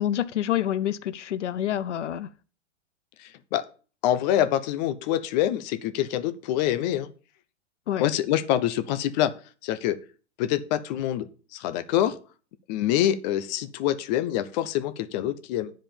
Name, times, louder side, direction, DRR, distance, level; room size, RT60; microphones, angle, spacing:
voice 1, 0.0-2.3 7.9-8.1, left 11 dB, 85° left, 0.7 m, -27 dB
voice 2, 3.2-3.6 4.0-7.1 8.0-9.3 9.6-10.0 10.4-12.2 12.7-15.7, left 12 dB, 40° left, 0.9 m, -26 dB
9.9 x 5.2 x 7.0 m
hypercardioid pair, 140°, 35 cm